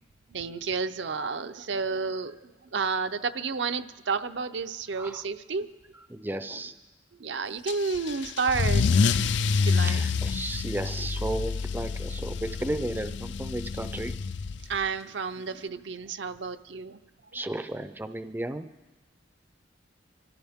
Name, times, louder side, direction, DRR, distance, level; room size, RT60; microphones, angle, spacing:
voice 1, 0.3-5.7 7.2-8.8 9.6-10.1 14.7-17.0 17.3-17.4, right 4 dB, 75° right, 9 dB, 0.7 m, -31 dB
voice 2, 6.1-6.7 8.1-8.2 9.7-14.1 17.3-18.7, right 1 dB, 10° right, 9 dB, 0.4 m, -34 dB
Car / Engine starting / Accelerating revving vroom, 7.7-14.8, left 4 dB, 70° left, 0.4 m, -27 dB
25.0 x 15.0 x 3.6 m, 1.2 s
head